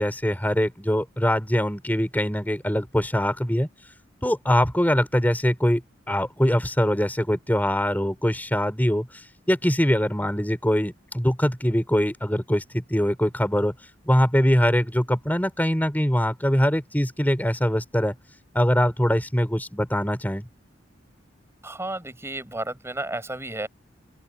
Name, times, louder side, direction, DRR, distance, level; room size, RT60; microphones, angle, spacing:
voice 1, 0.0-3.7 4.2-5.8 6.1-9.1 9.5-13.7 14.1-18.1 18.5-20.4, equal, 10° left, 5.0 m, -23 dB
voice 2, 21.6-23.7, right 2 dB, 15° right, 6.5 m, -32 dB
open air
head